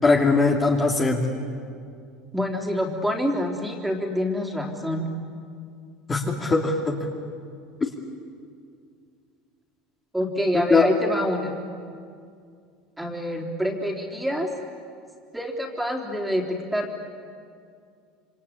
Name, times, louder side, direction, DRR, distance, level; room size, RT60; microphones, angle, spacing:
voice 1, 0.0-1.2 6.1-6.9 10.5-10.9, left 3 dB, 20° left, -1 dB, 2.7 m, -20 dB
voice 2, 2.3-5.1 10.1-11.5 13.0-14.5 15.3-17.0, equal, 5° right, 1 dB, 3.7 m, -26 dB
27.5 x 25.5 x 8.5 m, 2.3 s
supercardioid pair, 130°, 0 cm